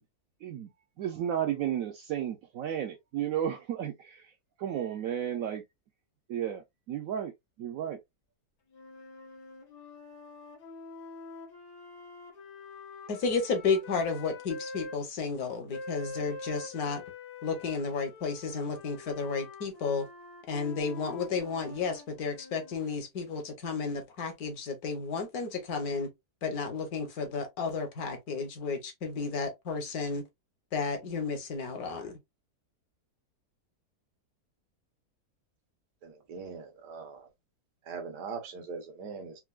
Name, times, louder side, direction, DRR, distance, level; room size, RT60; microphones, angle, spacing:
voice 1, 1.0-4.3 4.6-5.6 6.3-7.3 7.6-8.0, right 10 dB, 70° right, 0.9 m, -33 dB
sound 1, 8.7-15.0 15.7-22.8, left 3 dB, 85° left, 1.6 m, -46 dB
voice 2, 13.1-17.0 17.4-20.1 20.5-26.1 26.4-30.2 30.7-32.2, left 4 dB, 70° left, 1.5 m, -32 dB
voice 3, 36.0-37.3 37.8-39.4, right 5 dB, 85° right, 1.6 m, -41 dB
4.5 x 2.2 x 2.3 m
omnidirectional pair, 1.7 m